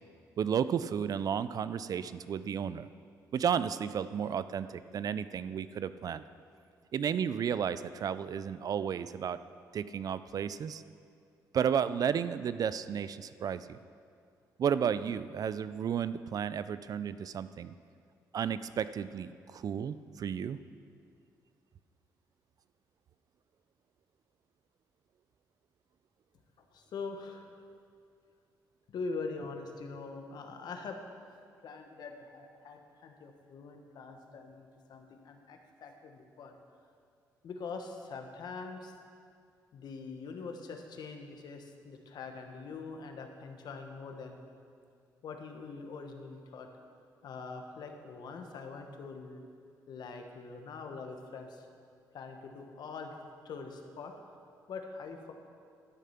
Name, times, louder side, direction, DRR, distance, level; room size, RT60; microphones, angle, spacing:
voice 1, 0.4-2.9 3.3-6.2 6.9-9.4 9.7-10.8 11.5-13.8 14.6-17.7 18.3-20.6, right 8 dB, 55° right, 14 dB, 0.4 m, -33 dB
voice 2, 26.7-27.5 28.9-31.0 31.6-36.6 37.4-38.9 39.7-44.4 45.2-46.7 47.2-49.4 49.9-51.7 52.1-53.1 53.4-54.1 54.7-55.3, left 4 dB, 65° left, 4 dB, 1.3 m, -43 dB
12.0 x 7.4 x 5.8 m, 2.3 s
cardioid pair, 75°, 8 cm